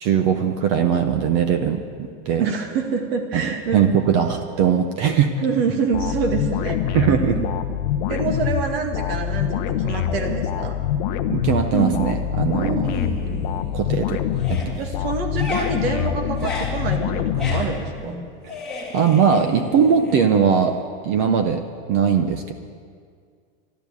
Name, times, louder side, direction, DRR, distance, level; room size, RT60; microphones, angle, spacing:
voice 1, 0.0-2.4 3.3-5.3 6.9-7.4 11.3-12.9 13.7-14.2 14.5-14.8 18.9-20.8 21.0-22.5, right 7 dB, 25° right, 7 dB, 0.4 m, -20 dB
voice 2, 2.4-3.9 5.4-7.0 7.4-7.5 8.1-10.8 12.5-12.8 14.8-18.2, right 5 dB, 55° right, 4 dB, 2.0 m, -26 dB
sound 1, 5.9-18.2, left 9 dB, 45° left, 0.7 m, -25 dB
sound 2, 11.7-12.3 12.6-14.0 14.3-20.8, left 1 dB, ahead, 2.0 m, -32 dB
13.0 x 12.0 x 8.2 m, 2.1 s
supercardioid pair, 180°, 35 cm